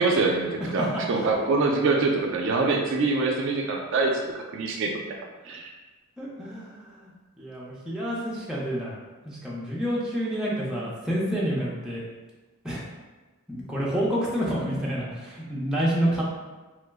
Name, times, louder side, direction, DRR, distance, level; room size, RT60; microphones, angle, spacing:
voice 1, 0.0-5.0 5.5-5.7, right 3 dB, 55° right, 1 dB, 0.3 m, -24 dB
voice 2, 0.6-1.0 6.2-7.1 7.4-9.0 9.2-12.0 12.6-12.8 13.5-16.2, equal, 5° right, -7 dB, 0.5 m, -28 dB
3.0 x 2.0 x 3.4 m, 1.2 s
head